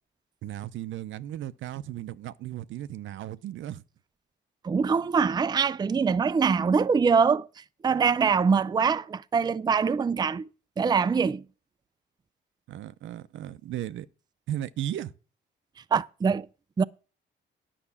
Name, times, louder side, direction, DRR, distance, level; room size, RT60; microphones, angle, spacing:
voice 1, 0.4-3.8 12.7-14.1 14.5-15.1, right 12 dB, 75° right, 0.7 m, -35 dB
voice 2, 4.6-7.5 7.8-10.5 10.8-11.4 15.9-16.5 16.8-16.9, right 5 dB, 20° right, 0.4 m, -23 dB
10.0 x 5.9 x 7.0 m
cardioid pair, 90°, 20 cm